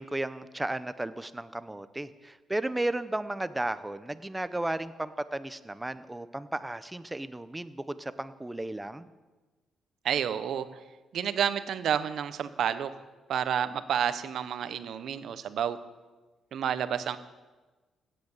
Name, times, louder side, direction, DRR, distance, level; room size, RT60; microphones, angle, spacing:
voice 1, 0.0-9.1, right 1 dB, 10° right, 13 dB, 0.8 m, -34 dB
voice 2, 10.0-10.7 11.1-12.9 13.3-15.8 16.5-17.2, right 9 dB, 65° right, 12 dB, 1.0 m, -30 dB
16.5 x 9.2 x 7.3 m, 1.2 s
cardioid pair, 90°, 0 cm